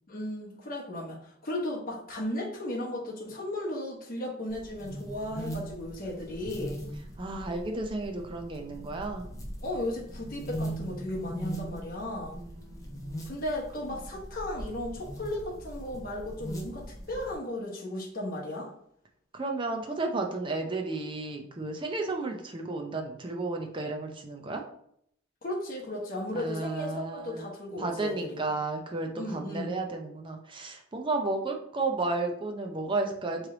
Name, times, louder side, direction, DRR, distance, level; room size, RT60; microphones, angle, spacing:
voice 1, 0.1-6.8 9.6-12.4 13.2-18.7 25.4-28.4 29.1-29.8, left 1 dB, 45° left, -3 dB, 1.0 m, -35 dB
sound 1, 4.5-17.4, right 1 dB, 15° left, 0.7 m, -40 dB
voice 2, 7.2-9.3 12.3-13.4 19.3-24.7 26.3-27.5 27.8-33.5, right 3 dB, 25° right, 3 dB, 0.5 m, -33 dB
3.2 x 3.1 x 3.8 m, 0.69 s
head